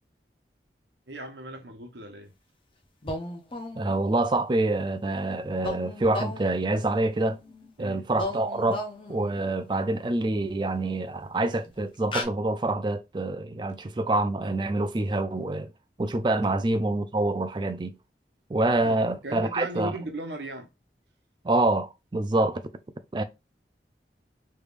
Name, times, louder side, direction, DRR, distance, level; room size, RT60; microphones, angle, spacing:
voice 1, 1.1-2.3 7.8-8.1 18.8-20.7, right 1 dB, 85° right, 1.0 m, -37 dB
sound 1, 3.0-4.2 5.6-7.7 8.1-9.6 11.1-11.2 11.6-11.8 12.1-12.2, left 2 dB, 30° left, 0.6 m, -36 dB
voice 2, 3.8-7.4 7.8-8.8 9.1-15.7 16.0-17.9 18.5-19.9 21.4-22.6 23.1-23.2, right 2 dB, 25° right, 0.4 m, -26 dB
3.4 x 3.2 x 2.5 m
head